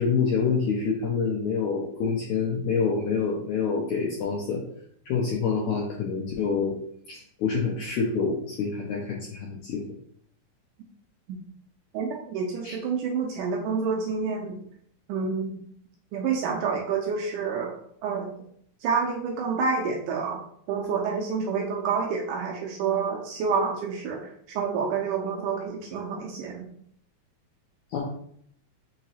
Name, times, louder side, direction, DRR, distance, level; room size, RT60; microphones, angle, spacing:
voice 1, 0.0-4.6 5.1-6.8 7.1-9.8 12.6-12.8 27.9-28.0, left 5 dB, 85° left, -2 dB, 1.7 m, -27 dB
voice 2, 11.9-14.6 15.1-15.5 16.1-17.7 18.0-18.3 18.8-20.4 20.7-24.2 24.6-26.7, right 5 dB, 80° right, 0 dB, 1.9 m, -28 dB
5.5 x 3.0 x 2.8 m, 0.66 s
omnidirectional pair, 4.1 m